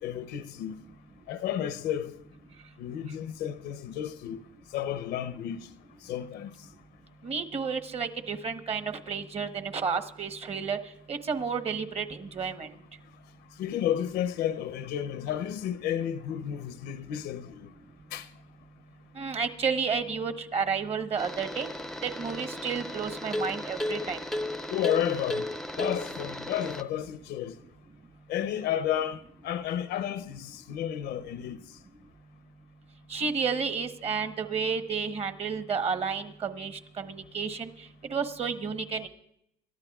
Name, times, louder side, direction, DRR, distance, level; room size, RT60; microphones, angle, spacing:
voice 1, 0.0-0.8 1.3-2.2 2.8-4.4 4.7-5.7 6.0-6.5 13.6-17.7 18.1-18.3 24.7-25.5 25.8-27.6 28.3-31.6, left 10 dB, 80° left, 0.7 m, -32 dB
voice 2, 7.2-10.8 11.1-12.7 19.1-21.7 22.0-24.2 33.1-39.1, right 5 dB, 35° right, 1.0 m, -31 dB
sound 1, 21.2-26.8, left 1 dB, ahead, 0.5 m, -35 dB
28.0 x 12.5 x 2.4 m
cardioid pair, 110°, 17 cm